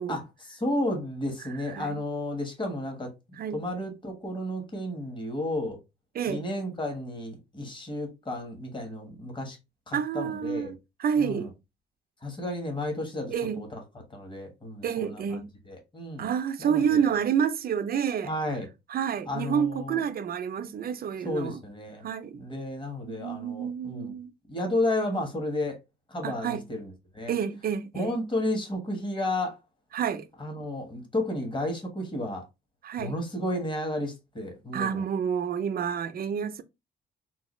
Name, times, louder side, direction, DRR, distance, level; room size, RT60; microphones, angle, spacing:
voice 1, 0.1-5.8 6.3-9.6 9.9-10.7 11.2-11.5 12.2-13.8 14.1-15.4 15.7-16.3 16.6-17.1 18.2-18.7 19.3-20.0 21.2-22.0 22.3-24.1 24.5-25.8 26.1-27.3 27.9-29.6 30.4-32.4 33.0-35.0, left 1 dB, 25° left, 1.3 m, -32 dB
voice 2, 1.6-2.0 3.4-3.6 6.1-6.4 9.9-11.5 13.3-13.6 14.8-15.5 16.2-18.3 18.9-21.6 22.0-22.4 23.1-24.3 26.2-26.6 27.3-28.2 29.9-30.3 32.8-33.2 34.7-36.6, right 8 dB, 50° right, 0.5 m, -29 dB
3.8 x 2.3 x 3.0 m
cardioid pair, 90°, 20 cm